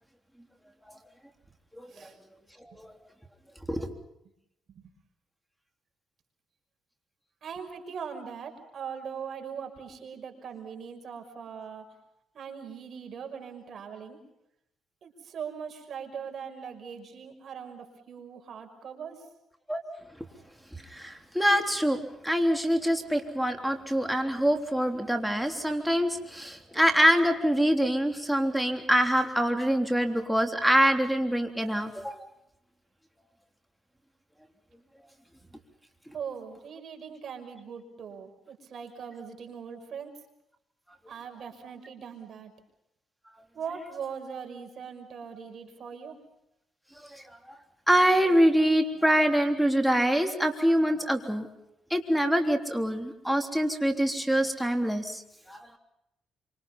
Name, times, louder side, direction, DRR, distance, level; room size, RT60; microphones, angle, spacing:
voice 1, 1.8-2.1 2.7-2.8 3.7-3.9 19.7-19.8 20.9-32.2 47.1-47.2 47.9-51.5 51.9-55.2 55.5-55.6, equal, ahead, 4 dB, 3.4 m, -25 dB
voice 2, 7.4-11.8 12.3-14.2 15.0-19.2 36.1-40.1 41.1-42.5 43.5-46.2, right 7 dB, 60° right, 5 dB, 5.9 m, -40 dB
27.0 x 25.5 x 5.6 m, 0.82 s
cardioid pair, 90°, 0 cm